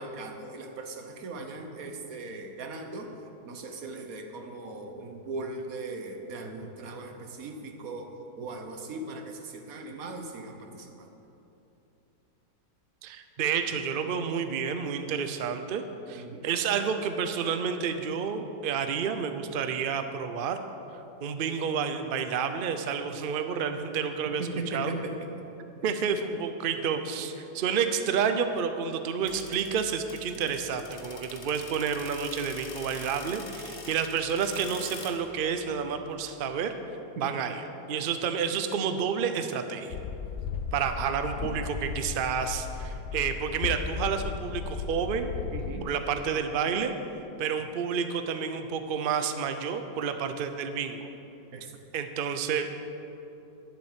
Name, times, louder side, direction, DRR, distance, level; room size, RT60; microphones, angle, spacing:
voice 1, 0.0-3.2 3.4-11.1 16.1-16.4 24.2-25.4 37.2-37.3 45.5-45.9 51.5-51.8, right 2 dB, 55° right, 4 dB, 1.4 m, -39 dB
voice 2, 13.0-20.6 21.2-24.4 24.7-24.9 25.8-36.7 37.2-37.6 37.9-40.0 40.7-45.3 45.8-46.9 47.4-51.1 51.9-52.7, right 6 dB, 85° right, 8 dB, 0.4 m, -30 dB
sound 1, 29.2-36.1, left 4 dB, 40° left, 1.2 m, -45 dB
sound 2, 39.9-45.8, left 6 dB, 65° left, 0.9 m, -35 dB
11.5 x 7.5 x 7.3 m, 2.9 s
omnidirectional pair, 1.9 m